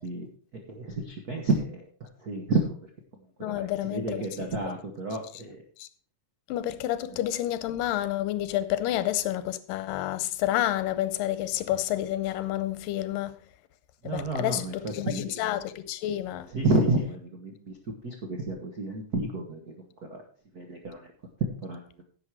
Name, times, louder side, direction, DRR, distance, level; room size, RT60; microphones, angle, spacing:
voice 1, 0.5-2.8 3.4-5.6 7.1-7.2 14.0-15.3 16.5-17.7 18.0-19.7 20.1-20.2 20.5-21.0 21.6-21.8, right 2 dB, 75° right, 0.8 m, -30 dB
voice 2, 3.4-4.5 5.8-5.9 6.5-13.4 14.0-16.5, left 13 dB, 85° left, 2.3 m, -29 dB
10.5 x 7.8 x 4.7 m
omnidirectional pair, 4.0 m